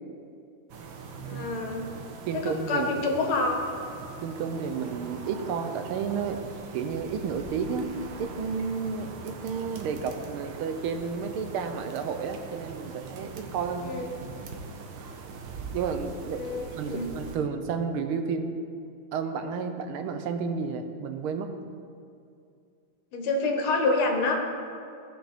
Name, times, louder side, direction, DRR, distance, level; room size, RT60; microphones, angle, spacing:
sound 1, 0.7-17.4, right 4 dB, 70° right, 1.5 m, -42 dB
voice 1, 1.3-1.9 2.3-3.6 13.8-14.2 16.3-17.1 23.1-24.4, left 3 dB, 80° left, 2 dB, 2.0 m, -27 dB
voice 2, 2.3-2.9 4.2-6.4 6.7-7.9 8.2-13.9 15.7-16.4 16.7-18.5 19.1-21.5, right 6 dB, 85° right, 7 dB, 1.6 m, -31 dB
15.0 x 5.7 x 4.2 m, 2.5 s
omnidirectional pair, 2.3 m